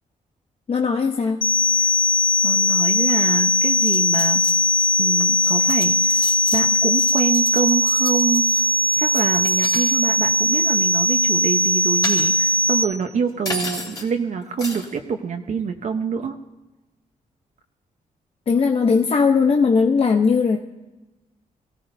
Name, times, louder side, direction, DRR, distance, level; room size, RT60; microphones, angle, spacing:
voice 1, 0.7-1.4 18.5-20.6, left 5 dB, 40° left, 3 dB, 0.7 m, -18 dB
sound 1, 1.4-12.8, left 1 dB, 80° left, 1.3 m, -19 dB
voice 2, 2.4-4.4 5.0-8.7 9.0-16.4, right 6 dB, 55° right, 4 dB, 0.8 m, -26 dB
sound 2, 3.8-4.9 5.2-9.9 10.2-10.5 11.6-12.7 13.4-14.1 14.6-15.0, left 1 dB, 25° left, 2.8 m, -33 dB
22.5 x 16.0 x 2.7 m, 1.1 s
wide cardioid pair, 120°, 15 cm